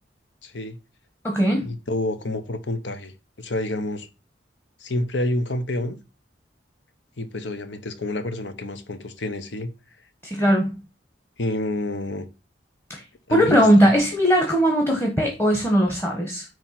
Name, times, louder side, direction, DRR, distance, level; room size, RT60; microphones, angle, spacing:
voice 1, 0.4-0.8 1.6-3.1 3.4-4.1 4.8-6.0 7.2-9.7 11.4-12.3 13.3-13.9, left 1 dB, 80° left, 1.1 m, -28 dB
voice 2, 1.2-1.7 10.2-10.7 12.9-13.0 13.3-16.4, equal, 10° left, 1.3 m, -19 dB
8.9 x 3.2 x 5.8 m
head